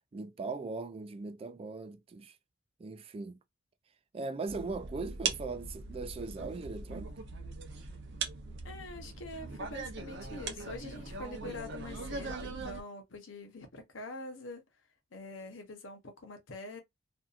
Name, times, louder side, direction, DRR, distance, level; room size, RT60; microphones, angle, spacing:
voice 1, 0.1-2.4 2.8-3.4 4.1-7.1, right 3 dB, 30° right, 0.3 m, -39 dB
sound 1, 4.5-12.8, right 4 dB, 65° right, 0.7 m, -40 dB
voice 2, 8.6-14.6 15.1-16.8, left 2 dB, 70° left, 0.8 m, -45 dB
2.7 x 2.4 x 2.4 m
head